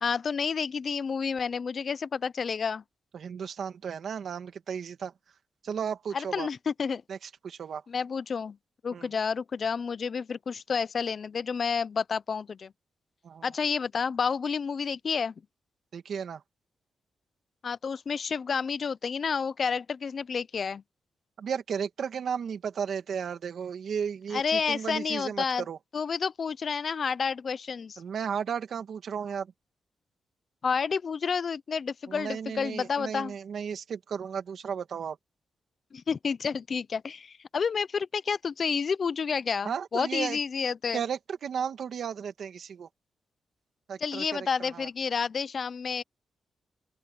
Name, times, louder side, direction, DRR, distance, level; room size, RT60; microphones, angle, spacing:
voice 1, 0.0-2.8 6.1-7.0 7.9-8.6 8.8-12.7 13.4-15.3 17.6-20.8 24.3-25.6 25.9-28.0 30.6-33.3 35.9-41.0 44.0-46.0, left 6 dB, 40° left, 0.4 m, -30 dB
voice 2, 3.1-5.1 5.6-6.5 7.1-7.8 8.9-9.1 13.2-13.5 15.9-16.4 21.4-25.8 28.0-29.5 32.1-35.2 39.6-40.4 40.9-42.9 43.9-44.9, right 7 dB, 60° right, 2.1 m, -34 dB
open air
wide cardioid pair, 160°, 0 cm